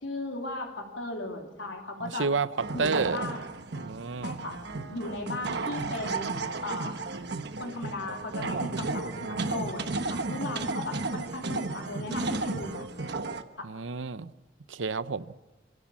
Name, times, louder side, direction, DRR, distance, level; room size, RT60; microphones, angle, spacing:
voice 1, 0.0-2.3 2.7-3.4 4.2-4.6 4.9-6.3 6.6-7.0 7.6-12.9 13.6-13.7, left 2 dB, 80° left, 3.3 m, -36 dB
voice 2, 2.0-3.2 3.8-4.4 13.6-14.3 14.7-15.3, right 4 dB, 85° right, 0.8 m, -30 dB
sound 1, 2.6-13.4, right 3 dB, 65° right, 1.1 m, -33 dB
26.0 x 16.5 x 7.3 m
head